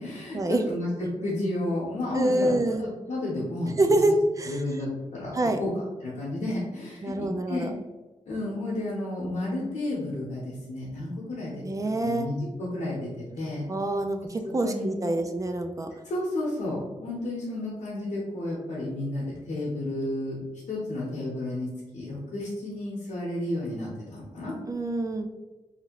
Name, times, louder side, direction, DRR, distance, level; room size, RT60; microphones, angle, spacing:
voice 1, 0.0-3.7 4.1-4.2 4.4-5.7 6.0-7.7 8.3-11.6 12.0-13.6 14.6-15.1 16.0-20.4 20.7-24.5, left 1 dB, 90° left, -7 dB, 0.8 m, -32 dB
voice 2, 2.1-2.8 3.8-4.6 5.3-5.6 7.0-7.7 11.6-12.3 13.7-15.9 24.7-25.3, right 1 dB, 30° right, 6 dB, 0.3 m, -26 dB
2.8 x 2.5 x 2.8 m, 1.1 s
wide cardioid pair, 90°, 12 cm